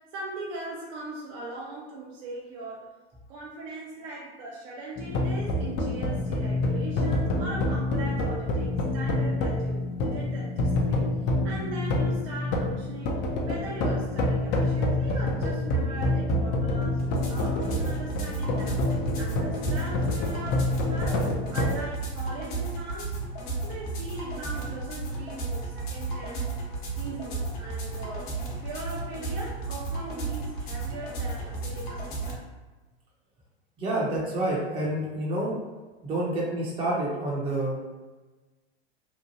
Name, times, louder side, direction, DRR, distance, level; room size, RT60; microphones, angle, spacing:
voice 1, 0.1-2.9 3.3-11.0 11.4-18.8 19.2-23.1 23.6-26.5 27.0-32.5, right 3 dB, 55° right, -4 dB, 0.7 m, -40 dB
sound 1, 5.0-21.8, left 2 dB, 35° left, 0.5 m, -27 dB
sound 2, 17.0-32.3, right 3 dB, 55° left, 1.0 m, -33 dB
voice 2, 33.8-35.5 36.0-37.9, right 1 dB, 15° right, -5 dB, 0.6 m, -28 dB
2.9 x 2.2 x 2.7 m, 1.2 s
hypercardioid pair, 115°, 32 cm